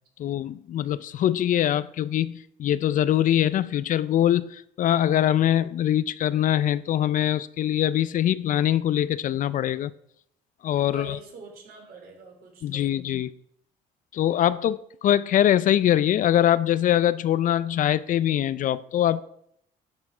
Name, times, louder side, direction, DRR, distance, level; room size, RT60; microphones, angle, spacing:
voice 1, 0.2-9.9 10.6-11.2 12.6-13.3 14.1-19.2, left 11 dB, 50° left, 0.4 m, -23 dB
voice 2, 10.7-13.0, right 4 dB, 65° right, 3.5 m, -45 dB
10.5 x 8.2 x 4.8 m
cardioid pair, 110°, 17 cm